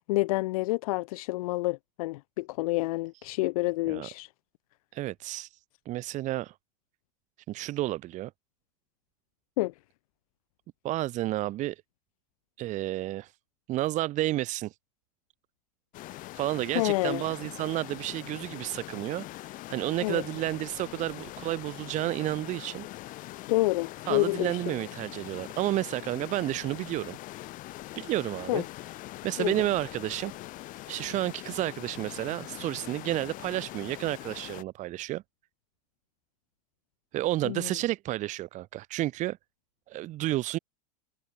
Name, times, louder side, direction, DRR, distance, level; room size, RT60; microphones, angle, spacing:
voice 1, 0.0-4.3 9.6-9.7 16.7-17.2 20.0-20.2 23.5-24.7 28.5-28.6 29.4-29.5 37.4-37.7, left 21 dB, 65° left, 1.2 m, -28 dB
voice 2, 4.9-5.5 5.8-6.5 7.5-8.3 10.8-11.7 12.6-13.3 13.7-14.7 16.3-19.3 19.7-22.9 24.1-27.2 27.9-28.6 29.2-30.3 30.9-35.2 37.1-39.4 39.9-40.6, right 16 dB, 40° right, 1.5 m, -31 dB
sound 1, 15.9-34.6, left 17 dB, 45° left, 4.9 m, -43 dB
hypercardioid pair, 120°, 19 cm